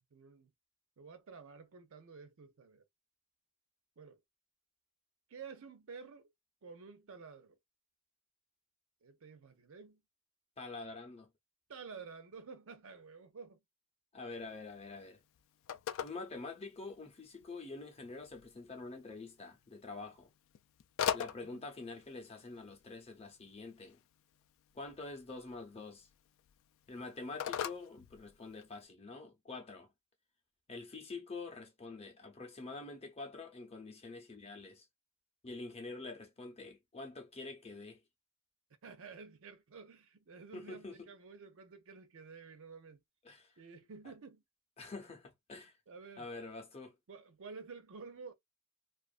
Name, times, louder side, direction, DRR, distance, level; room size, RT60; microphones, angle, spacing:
voice 1, 0.1-0.5 1.0-2.8 4.0-4.2 5.3-6.3 6.6-7.6 9.0-10.0 11.7-13.6 21.4-21.7 38.8-43.0 43.6-44.4 45.9-46.3 47.1-48.3, right 5 dB, 60° right, 0.6 m, -51 dB
voice 2, 10.6-11.3 14.1-15.2 16.0-20.3 21.1-24.0 24.7-26.1 26.9-29.9 30.7-34.8 35.4-38.0 40.5-41.1 43.2-43.5 44.8-45.7 46.2-46.9, left 3 dB, 30° left, 0.7 m, -46 dB
Telephone, 14.3-28.8, left 9 dB, 60° left, 0.3 m, -44 dB
2.5 x 2.4 x 2.4 m
head